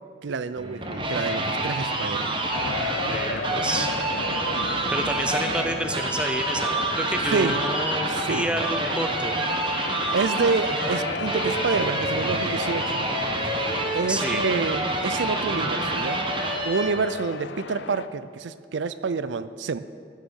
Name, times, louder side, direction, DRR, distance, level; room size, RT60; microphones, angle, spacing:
voice 1, 0.2-2.4 7.3-7.6 8.1-8.5 10.1-13.0 13.9-16.2 16.6-19.8, right 4 dB, 80° right, 14 dB, 0.5 m, -28 dB
sound 1, 0.6-17.1, right 2 dB, 25° right, 1.1 m, -27 dB
sound 2, 2.5-18.1, left 5 dB, 75° left, 0.5 m, -34 dB
voice 2, 3.0-3.9 4.9-9.4 14.1-14.4, right 1 dB, 5° right, 5 dB, 0.5 m, -29 dB
14.0 x 6.5 x 6.4 m, 2.2 s
head